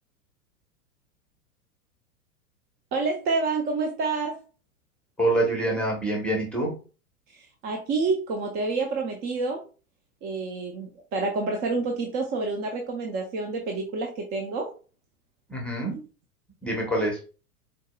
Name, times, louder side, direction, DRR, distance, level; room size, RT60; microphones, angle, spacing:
voice 1, 2.9-4.4 7.3-9.6 10.2-14.7, right 3 dB, 20° right, 2 dB, 0.5 m, -28 dB
voice 2, 5.2-6.7 15.5-16.0 16.6-17.2, right 1 dB, ahead, -1 dB, 0.9 m, -25 dB
4.5 x 3.9 x 2.2 m, 0.36 s
figure-of-eight pair, 100°, 45 cm